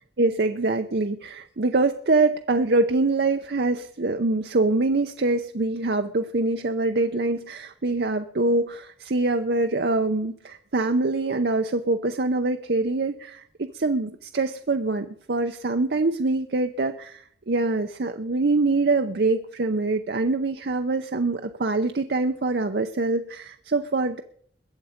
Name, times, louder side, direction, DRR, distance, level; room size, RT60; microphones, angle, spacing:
voice 1, 0.2-24.2, right 3 dB, 65° right, 7 dB, 0.7 m, -24 dB
21.5 x 8.3 x 5.1 m, 0.62 s
head